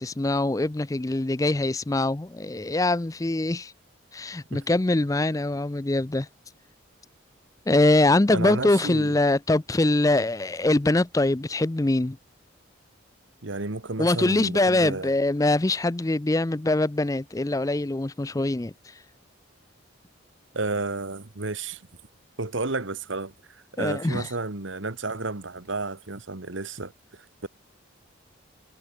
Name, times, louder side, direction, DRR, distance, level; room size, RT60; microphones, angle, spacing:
voice 1, 0.0-3.7 4.1-6.3 7.7-12.2 14.0-19.0 23.8-24.3, left 2 dB, 15° left, 0.4 m, -23 dB
voice 2, 8.3-9.2 13.4-15.1 20.5-21.9 22.4-27.5, right 3 dB, 75° right, 1.6 m, -32 dB
head